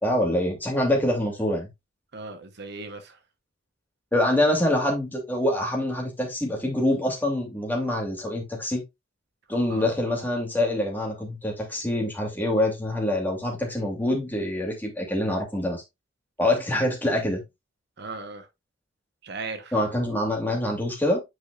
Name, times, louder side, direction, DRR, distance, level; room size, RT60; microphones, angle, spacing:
voice 1, 0.0-1.7 4.1-8.8 9.5-15.8 16.4-17.4 19.7-21.2, left 1 dB, 10° left, 2.6 m, -25 dB
voice 2, 2.1-3.2 9.7-9.9 18.0-18.5 19.2-19.7, right 3 dB, 60° right, 0.9 m, -37 dB
9.4 x 4.9 x 2.4 m
head